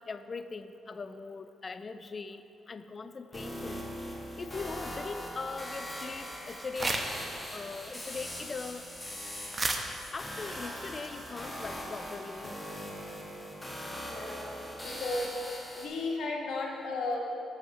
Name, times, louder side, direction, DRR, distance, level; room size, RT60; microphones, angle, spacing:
voice 1, 0.0-3.9 4.4-7.0 7.5-8.9 10.1-12.6, left 4 dB, 40° left, 11 dB, 0.4 m, -41 dB
sound 1, 3.3-15.9, equal, 5° left, 1.8 m, -41 dB
sound 2, 5.9-7.3 7.6-12.2, right 2 dB, 30° right, 0.9 m, -38 dB
voice 2, 14.0-15.4 15.7-17.2, left 2 dB, 70° left, -1 dB, 1.3 m, -35 dB
7.1 x 6.2 x 5.8 m, 2.7 s
supercardioid pair, 65°, 0 cm